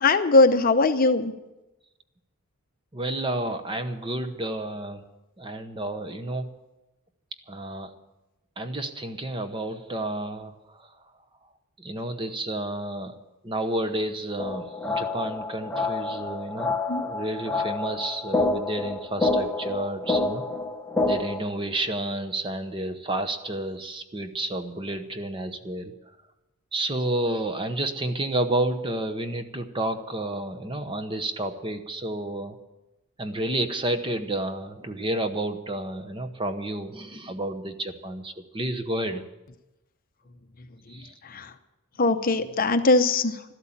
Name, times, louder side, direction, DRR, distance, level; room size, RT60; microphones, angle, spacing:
voice 1, 0.0-1.3 16.9-17.0 41.2-41.5 42.0-43.4, left 3 dB, 40° left, 9 dB, 0.8 m, -20 dB
voice 2, 2.9-5.0 5.4-6.5 7.5-7.9 8.6-10.9 11.8-13.2 13.4-16.7 17.0-20.4 21.1-25.9 26.7-32.6 33.2-39.2 40.9-41.1, right 1 dB, 20° right, 8 dB, 0.9 m, -30 dB
sound 1, 14.4-21.4, left 2 dB, 10° left, 0.9 m, -28 dB
13.0 x 12.5 x 7.3 m, 0.99 s
head